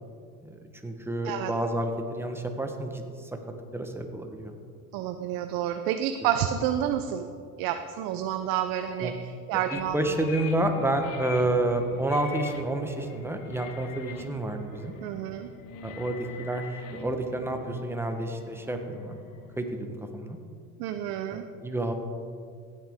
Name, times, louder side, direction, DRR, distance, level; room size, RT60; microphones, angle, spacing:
voice 1, 0.4-3.0 3.7-4.5 9.0-9.1 9.7-14.9 15.8-16.7 16.9-19.2 19.6-19.7 20.1-20.4 21.3-21.9, right 1 dB, 5° right, 4 dB, 1.2 m, -29 dB
voice 2, 4.9-7.3 7.6-10.2 15.0-15.5 20.8-21.4, right 10 dB, 55° right, 8 dB, 0.7 m, -29 dB
sound 1, 9.7-19.6, left 6 dB, 50° left, 1.2 m, -44 dB
15.0 x 9.4 x 3.7 m, 2.3 s
supercardioid pair, 100°, 42 cm